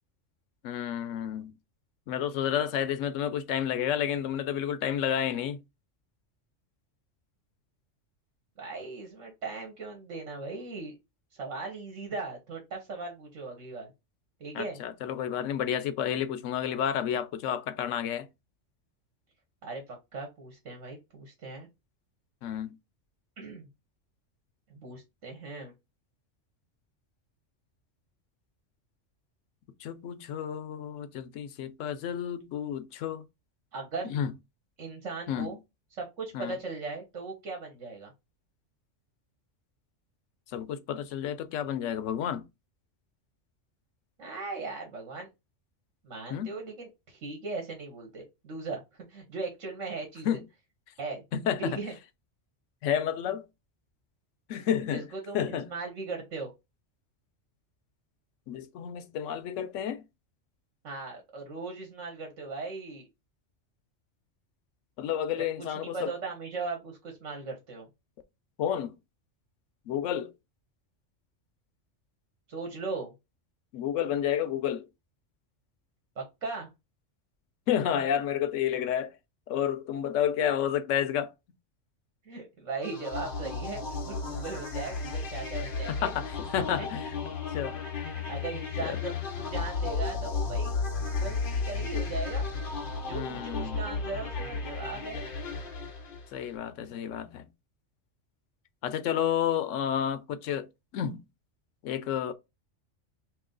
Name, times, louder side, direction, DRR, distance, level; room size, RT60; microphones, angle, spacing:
voice 1, 0.6-1.6 2.1-5.6 14.5-18.3 22.4-22.8 29.8-33.2 34.0-34.3 35.3-35.6 36.3-36.5 40.5-42.4 46.3-46.6 50.2-50.4 51.3-51.8 52.8-53.5 54.5-55.1 55.3-55.7 58.5-60.0 65.0-66.1 68.6-69.0 69.9-70.3 73.7-74.9 77.7-79.2 79.5-81.3 85.9-87.2 87.5-87.8 88.8-89.0 93.1-93.8 96.3-97.5 98.8-100.7 100.9-101.2 101.8-102.3, left 9 dB, 85° left, 0.9 m, -30 dB
voice 2, 8.6-11.0 11.3-13.9 14.4-14.8 19.6-21.7 23.4-23.7 24.7-25.7 33.7-34.1 34.8-35.6 35.9-38.1 44.2-45.3 46.0-50.4 51.0-51.2 51.6-51.9 54.9-56.5 60.8-63.0 65.4-67.9 72.5-73.1 76.1-76.7 82.2-86.1 86.6-86.9 88.1-92.5 93.0-95.3, right 3 dB, 80° right, 1.4 m, -38 dB
sound 1, 82.8-96.5, left 4 dB, 50° left, 1.0 m, -34 dB
3.0 x 2.9 x 3.7 m
omnidirectional pair, 1.3 m